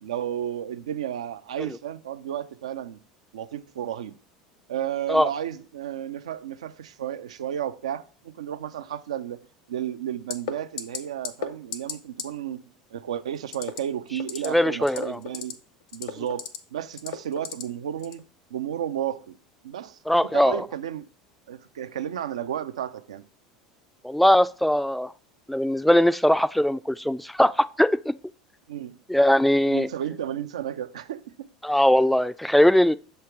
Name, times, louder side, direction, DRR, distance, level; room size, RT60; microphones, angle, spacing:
voice 1, 0.0-3.0 3.3-4.1 4.7-12.6 12.9-15.6 15.9-16.4 16.7-18.2 18.5-19.3 19.6-21.1 21.5-23.2 28.7-29.0 29.6-31.5, right 10 dB, 75° right, 0.4 m, -33 dB
sound 1, 10.3-10.5 10.8-11.0 11.2-11.5 11.7-11.9 12.2-12.3 13.5-13.8 14.2-14.5 14.8-15.5 15.9-16.6 17.0-17.6 18.0-18.2, left 8 dB, 65° left, 0.7 m, -32 dB
voice 2, 14.4-15.2 20.1-20.6 24.0-25.1 25.5-28.2 29.1-29.9 31.6-32.9, left 1 dB, ahead, 0.3 m, -20 dB
6.8 x 3.3 x 4.5 m
hypercardioid pair, 75°, 3 cm